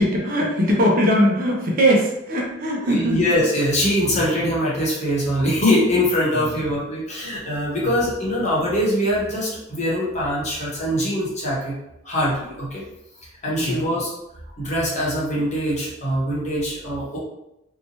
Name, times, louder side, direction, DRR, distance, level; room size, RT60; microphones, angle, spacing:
voice 1, 0.0-3.2 4.0-4.2 6.3-6.5 7.7-7.9 13.6-13.8, equal, 45° right, -1 dB, 0.6 m, -21 dB
voice 2, 2.8-11.7 12.0-12.8 13.4-14.1 14.6-17.2, equal, 35° left, -6 dB, 0.9 m, -22 dB
2.8 x 2.2 x 2.9 m, 0.89 s
head